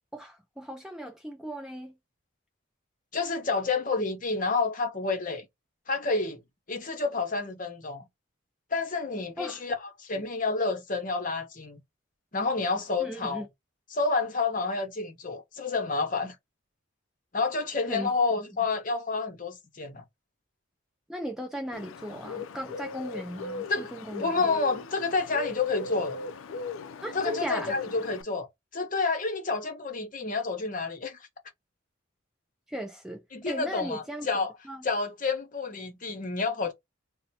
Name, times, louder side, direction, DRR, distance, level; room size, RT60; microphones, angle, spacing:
voice 1, 0.1-1.9 9.4-9.6 13.0-13.5 17.9-18.1 21.1-24.5 27.0-27.7 32.7-34.3 34.6-34.8, right 1 dB, 5° right, 0.5 m, -37 dB
voice 2, 3.1-5.5 5.9-6.4 6.7-8.0 8.7-11.8 12.3-13.5 13.9-16.3 17.3-20.0 23.7-23.9 24.2-26.2 27.1-28.5 28.7-31.2 33.3-34.5 34.8-36.7, left 4 dB, 40° left, 0.8 m, -29 dB
Bird, 21.7-28.2, left 4 dB, 75° left, 0.4 m, -39 dB
2.7 x 2.1 x 4.0 m
head